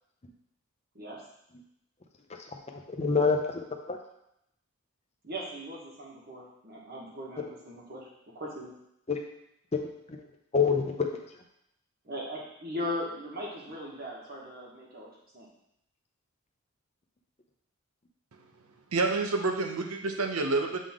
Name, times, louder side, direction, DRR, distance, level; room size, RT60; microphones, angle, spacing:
voice 1, 2.7-4.0 9.1-9.2 10.1-10.3 10.5-11.1, left 5 dB, 30° left, 3 dB, 0.6 m, -27 dB
voice 2, 5.2-8.0 8.3-8.7 12.1-15.1 15.3-15.5, equal, 45° right, -4 dB, 1.4 m, -38 dB
voice 3, 18.9-20.8, right 3 dB, 80° right, 4 dB, 0.8 m, -28 dB
7.4 x 3.7 x 3.6 m, 0.79 s
head